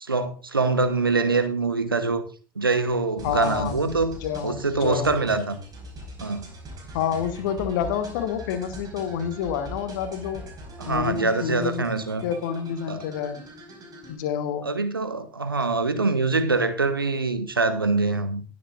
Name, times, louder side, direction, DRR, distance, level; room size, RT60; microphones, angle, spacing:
voice 1, 0.0-2.2 2.6-4.2 4.4-5.6 6.2-6.5 10.8-12.2 12.9-13.0 14.6-18.4, right 3 dB, 85° right, 11 dB, 1.0 m, -24 dB
voice 2, 3.2-3.8 4.2-5.2 6.9-10.4 10.9-11.9 12.2-13.4 14.1-14.7, left 8 dB, 60° left, 11 dB, 1.3 m, -28 dB
sound 1, 3.2-14.2, right 1 dB, 35° right, 5.0 m, -41 dB
20.0 x 7.5 x 2.5 m, 0.36 s
figure-of-eight pair, 60°, 11 cm